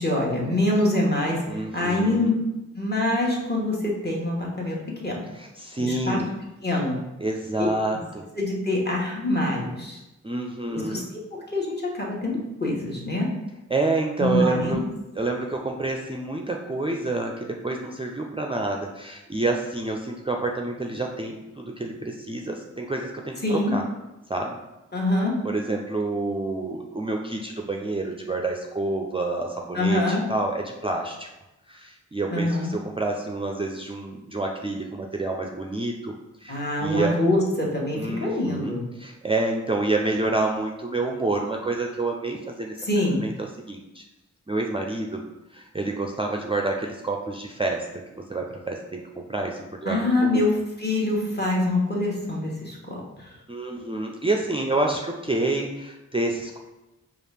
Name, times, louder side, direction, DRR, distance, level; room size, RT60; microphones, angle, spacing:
voice 1, 0.0-2.3 2.7-4.8 5.0-5.2 5.8-6.2 6.6-7.0 8.3-10.0 10.7-11.2 11.5-13.3 14.2-14.8 23.4-23.8 24.9-25.4 29.7-30.2 32.3-32.7 36.5-38.8 42.8-43.2 49.8-53.3, left 1 dB, 35° left, -2 dB, 1.2 m, -25 dB
voice 2, 1.5-2.3 5.4-6.3 7.2-8.2 10.2-11.1 13.7-14.8 15.2-23.8 24.3-24.6 25.4-31.3 31.7-36.1 36.4-37.2 38.0-42.8 43.2-44.0 44.5-45.2 45.5-47.9 48.2-50.5 53.5-56.6, right 2 dB, 20° right, 1 dB, 0.4 m, -28 dB
4.8 x 2.5 x 3.3 m, 0.98 s
cardioid pair, 50°, 30 cm